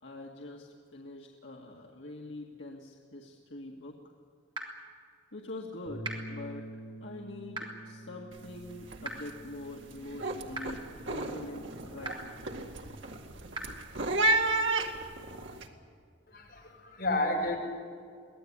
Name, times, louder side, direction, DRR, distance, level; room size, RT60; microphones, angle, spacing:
voice 1, 0.0-4.0 5.3-6.7 7.0-12.5, left 2 dB, 85° left, -2 dB, 2.0 m, -44 dB
sound 1, 4.5-4.6 6.0-6.1 7.5-7.6 9.0-9.1 10.5-10.6 12.0-12.1 13.5-13.6, right 3 dB, 25° right, 3.6 m, -36 dB
Bass guitar, 5.9-12.1, equal, 40° left, 5.0 m, -47 dB
sound 2, 8.3-8.6 8.8-9.3 9.7-15.6, right 2 dB, 90° right, 2.2 m, -32 dB
voice 2, 16.3-17.6, left 2 dB, 55° left, -1 dB, 6.8 m, -31 dB
24.0 x 17.5 x 9.9 m, 2.2 s
head